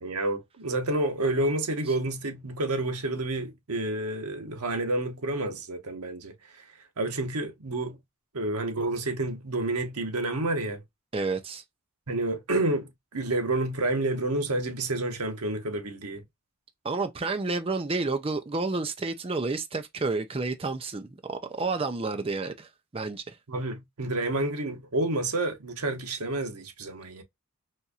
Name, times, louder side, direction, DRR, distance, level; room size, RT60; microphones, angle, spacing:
voice 1, 0.0-6.3 7.0-8.0 8.3-10.8 12.1-16.2 23.5-27.2, right 2 dB, 85° right, 1.0 m, -29 dB
voice 2, 11.1-11.6 16.8-23.4, right 3 dB, 25° right, 0.5 m, -30 dB
4.2 x 2.6 x 2.2 m
head